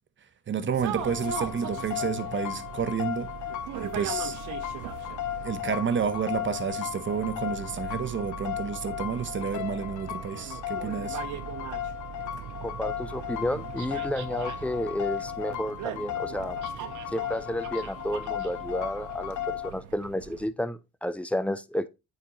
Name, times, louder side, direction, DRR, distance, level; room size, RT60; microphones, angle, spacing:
voice 1, 0.5-3.3 3.8-4.4 5.4-11.2, right 7 dB, 40° right, 0.8 m, -30 dB
sound 1, 0.7-20.5, right 10 dB, 80° right, 0.7 m, -40 dB
sound 2, 1.0-19.7, left 12 dB, 75° left, 0.7 m, -35 dB
voice 2, 12.6-16.6 17.1-21.9, left 1 dB, 5° left, 0.4 m, -31 dB
8.4 x 3.9 x 2.9 m
cardioid pair, 90°, 30 cm